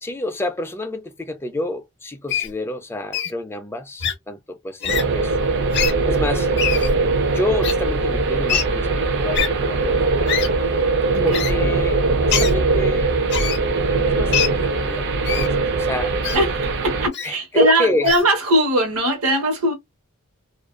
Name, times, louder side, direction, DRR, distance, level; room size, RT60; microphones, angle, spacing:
voice 1, 0.0-5.6 6.0-6.5 7.3-10.4 11.2-13.2 14.1-16.4 17.2-18.1, left 1 dB, 10° left, 0.4 m, -28 dB
Wild animals, 2.3-2.5 3.1-3.3 4.0-4.1 4.8-5.0 5.7-5.9 6.6-6.9 7.6-7.7 8.5-8.6 9.3-9.5 10.3-10.5 11.3-11.5 12.3-12.5 13.3-13.6 14.3-14.5 15.2-15.5 16.2-16.4 17.1-17.3 18.0-18.2, left 8 dB, 55° left, 0.6 m, -23 dB
sound 1, 4.9-17.1, right 3 dB, 55° right, 0.5 m, -21 dB
voice 2, 16.3-19.7, right 1 dB, 75° right, 1.0 m, -20 dB
2.4 x 2.2 x 2.4 m
head